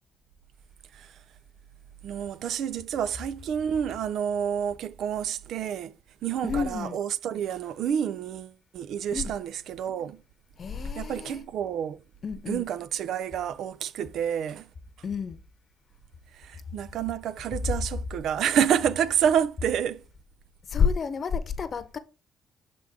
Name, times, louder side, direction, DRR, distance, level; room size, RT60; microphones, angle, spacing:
voice 1, 2.0-5.9 6.2-10.2 11.0-12.0 12.5-14.7 16.3-20.1, right 8 dB, 75° right, 0.4 m, -29 dB
voice 2, 6.4-7.0 9.1-9.3 10.6-11.4 12.2-12.7 15.0-15.4 20.7-22.0, left 6 dB, 45° left, 0.8 m, -29 dB
7.3 x 3.7 x 3.6 m
cardioid pair, 90°, 0 cm